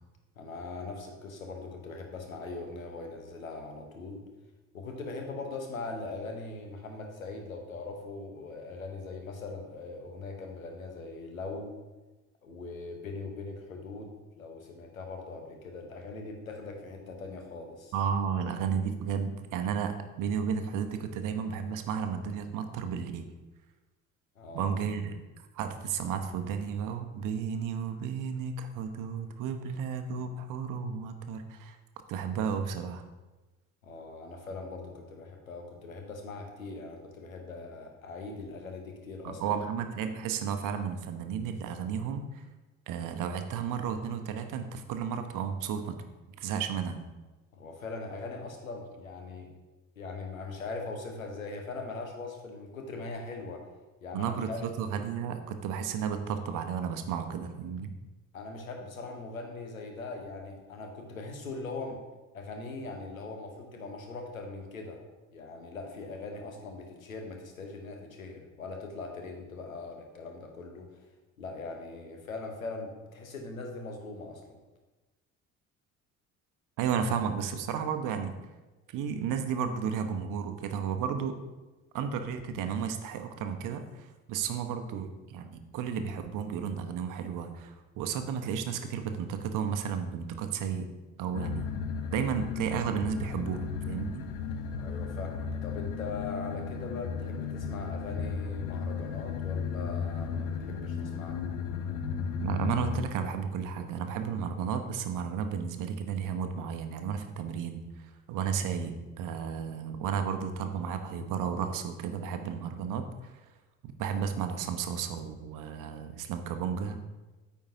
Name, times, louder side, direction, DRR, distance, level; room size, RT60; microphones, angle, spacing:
voice 1, 0.4-4.2 4.7-11.8 12.4-17.9 24.4-24.7 33.8-39.6 47.5-49.5 50.0-53.6 54.0-54.6 58.3-62.0 62.3-65.0 65.3-71.0 71.4-74.6 94.8-101.4, left 3 dB, 80° left, 3 dB, 1.1 m, -41 dB
voice 2, 17.9-23.3 24.5-25.2 25.5-31.8 32.1-33.0 39.2-42.4 42.9-46.0 46.4-47.0 54.1-57.9 76.8-78.4 78.9-81.3 81.9-90.9 91.2-91.6 92.1-94.3 102.4-113.3 113.8-117.0, right 7 dB, 50° right, 7 dB, 0.9 m, -33 dB
sound 1, 91.3-103.0, left 6 dB, 65° left, 0.7 m, -35 dB
13.5 x 4.7 x 2.8 m, 1.2 s
figure-of-eight pair, 50°, 41 cm